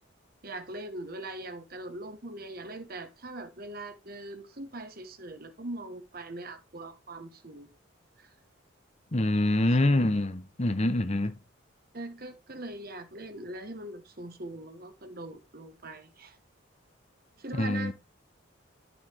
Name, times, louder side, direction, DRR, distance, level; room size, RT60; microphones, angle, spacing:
voice 1, 0.4-7.7 8.2-8.3 9.9-10.1 11.9-16.4 17.4-17.9, right 2 dB, 45° right, 1.2 m, -41 dB
voice 2, 9.1-11.4 17.5-17.9, left 1 dB, 30° left, 0.8 m, -25 dB
11.5 x 6.2 x 3.4 m
head